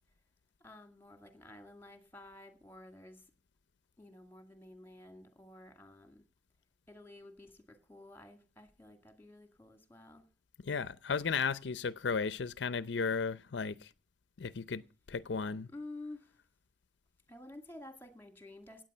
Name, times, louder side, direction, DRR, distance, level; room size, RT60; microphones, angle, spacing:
voice 1, 0.6-3.3 4.0-6.3 6.9-10.3 15.7-16.3 17.3-18.8, left 2 dB, 10° left, 2.2 m, -51 dB
voice 2, 10.6-13.9 14.4-14.8 15.1-15.7, left 5 dB, 75° left, 0.6 m, -34 dB
16.5 x 9.1 x 5.5 m
head